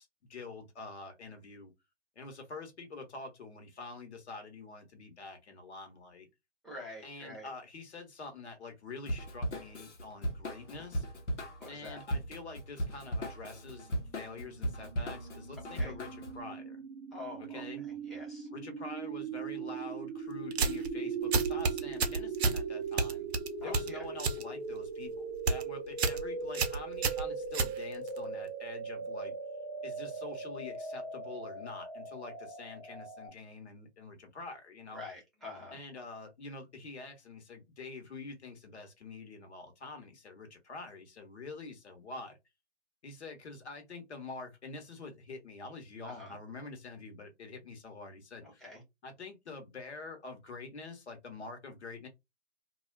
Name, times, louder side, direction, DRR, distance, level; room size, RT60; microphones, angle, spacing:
voice 1, 0.0-1.7 2.2-6.3 7.0-11.1 11.7-16.8 17.4-17.8 18.5-23.3 23.6-29.3 29.8-35.0 35.7-42.4 43.0-48.6 49.0-52.1, left 3 dB, 70° left, 1.1 m, -46 dB
voice 2, 6.6-7.5 11.6-12.0 15.7-16.0 17.1-18.5 23.6-24.1 34.9-35.8 46.0-46.4 48.4-48.8, left 2 dB, ahead, 0.9 m, -46 dB
Drum kit / Drum, 9.1-16.4, equal, 90° left, 1.0 m, -37 dB
sound 1, 14.1-33.3, right 5 dB, 20° right, 0.4 m, -39 dB
sound 2, 20.5-20.9 21.3-22.6 23.0-24.4 24.8-25.1 25.3-25.6 26.0-26.2 26.5-28.2, right 4 dB, 65° right, 0.6 m, -30 dB
2.3 x 2.3 x 2.2 m
figure-of-eight pair, 130°, 35 cm